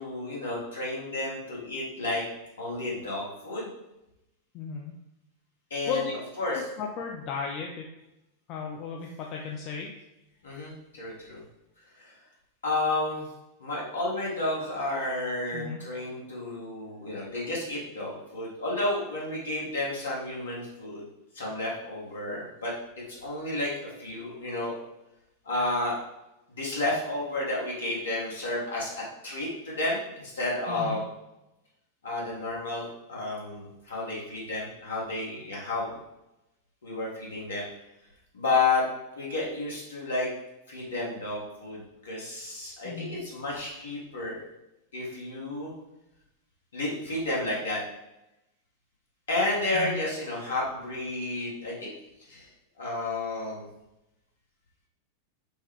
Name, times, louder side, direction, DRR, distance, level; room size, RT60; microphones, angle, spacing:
voice 1, 0.0-2.2 2.6-3.7 5.7-6.7 10.4-11.4 12.0-12.1 12.6-13.3 13.6-21.0 21.3-22.7 23.1-23.7 24.0-24.8 25.4-26.0 26.6-28.9 29.2-31.1 32.0-35.9 36.8-37.6 38.3-38.8 39.2-40.3 40.7-44.4 44.9-45.7 46.7-47.8 49.3-51.9 52.3-52.5 52.8-53.7, left 2 dB, 65° left, -4 dB, 1.4 m, -31 dB
voice 2, 4.5-4.9 5.9-6.1 6.5-7.9 8.5-9.9 15.5-15.9 30.7-31.0 42.8-43.2 49.7-50.0, left 5 dB, 40° left, 0 dB, 0.4 m, -35 dB
5.3 x 2.3 x 3.4 m, 0.92 s
figure-of-eight pair, 90°, 0 cm